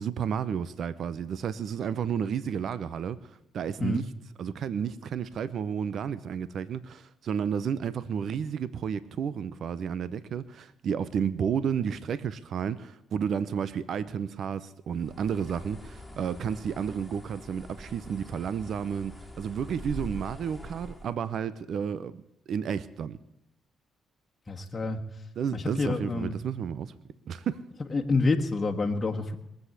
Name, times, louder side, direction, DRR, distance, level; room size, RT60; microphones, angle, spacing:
voice 1, 0.0-4.0 4.4-22.2 22.5-23.2 25.4-26.9 27.3-27.6, right 7 dB, 65° right, 0.8 m, -32 dB
Bird, 14.9-21.1, equal, ahead, 3.6 m, -44 dB
voice 2, 24.5-25.0 25.5-26.3 27.9-29.4, left 3 dB, 30° left, 1.6 m, -27 dB
20.5 x 8.0 x 8.1 m
cardioid pair, 90°, 0 cm